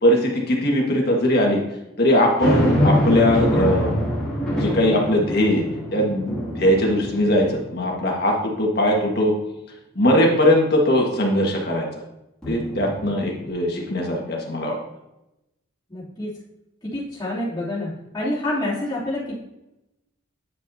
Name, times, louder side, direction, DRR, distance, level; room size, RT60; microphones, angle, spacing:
voice 1, 0.0-1.6 2.0-4.0 4.5-5.6 5.9-9.3 9.9-11.9 12.5-14.8, left 1 dB, 50° left, -1 dB, 1.6 m, -20 dB
sound 1, 2.4-7.9 8.4-8.5 12.4-13.5, equal, 5° left, 2.4 m, -24 dB
voice 2, 15.9-16.3 16.8-19.4, left 1 dB, 20° left, -8 dB, 2.8 m, -27 dB
9.5 x 6.6 x 2.7 m, 0.92 s
head